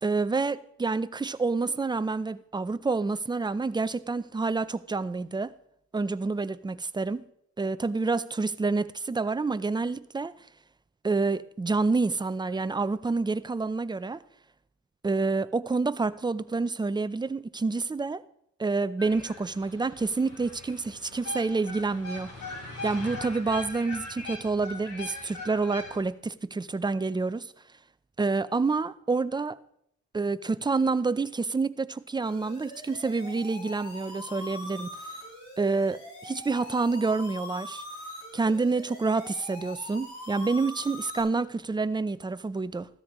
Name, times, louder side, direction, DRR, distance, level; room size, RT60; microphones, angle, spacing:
voice 1, 0.0-5.5 5.9-7.3 7.6-10.3 11.0-14.2 15.0-18.2 18.6-22.3 22.8-27.5 28.2-29.6 30.1-34.9 35.6-37.8 38.3-42.9, right 3 dB, 15° right, 0.5 m, -28 dB
sound 1, 19.0-26.0, left 2 dB, 55° left, 4.1 m, -40 dB
sound 2, 32.2-41.2, left 1 dB, 80° left, 6.6 m, -42 dB
16.0 x 13.0 x 3.1 m
cardioid pair, 90°, 30 cm